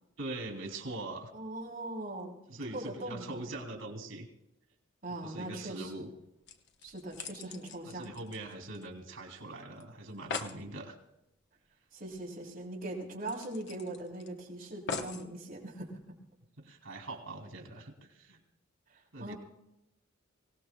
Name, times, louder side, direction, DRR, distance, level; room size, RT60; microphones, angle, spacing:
voice 1, 0.2-1.3 2.5-4.3 5.2-6.1 7.8-11.0 16.6-18.4 19.1-19.3, right 2 dB, 90° right, 3 dB, 3.3 m, -42 dB
voice 2, 1.3-2.3 2.7-3.4 5.0-5.9 6.8-8.1 11.9-15.9 18.9-19.3, right 1 dB, 45° right, -2 dB, 3.6 m, -40 dB
sound 1, 6.1-6.2 6.5-9.1 9.4-9.5 9.8-9.9 10.1-10.6 12.1-12.2 12.5-12.6 13.3-14.3 14.9-15.3 16.0-16.1, left 5 dB, 60° left, 1.1 m, -41 dB
24.5 x 18.0 x 2.4 m, 0.87 s
head